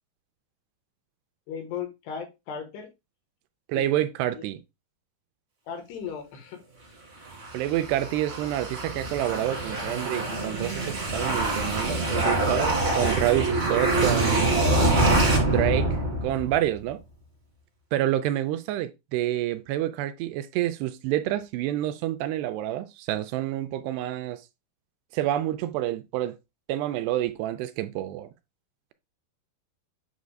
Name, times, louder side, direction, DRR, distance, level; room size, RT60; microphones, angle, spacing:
voice 1, 1.5-2.9 3.7-3.9 4.3-4.4 5.7-6.6, left 7 dB, 75° left, 3.3 m, -36 dB
voice 2, 3.7-4.6 7.5-14.7 15.5-17.0 17.9-24.4 25.1-26.4 26.7-28.3, right 13 dB, 80° right, 2.6 m, -28 dB
sound 1, 7.3-16.6, right 2 dB, 35° right, 0.9 m, -25 dB
8.2 x 6.3 x 2.2 m
omnidirectional pair, 4.9 m